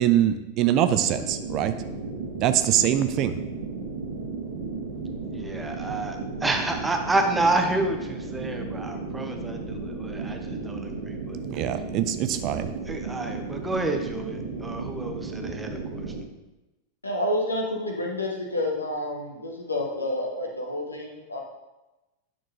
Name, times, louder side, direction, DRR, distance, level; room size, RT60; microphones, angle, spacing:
voice 1, 0.0-1.7 2.4-3.4 11.5-12.7, right 11 dB, 40° right, 10 dB, 0.5 m, -23 dB
sound 1, 0.9-16.2, right 4 dB, 60° right, 1.2 m, -34 dB
voice 2, 5.2-11.4 12.9-16.1, right 2 dB, 10° right, 4 dB, 0.9 m, -29 dB
voice 3, 17.0-21.4, left 1 dB, 80° left, 0 dB, 1.3 m, -29 dB
9.6 x 6.2 x 2.7 m, 1.0 s
figure-of-eight pair, 90°, 0 cm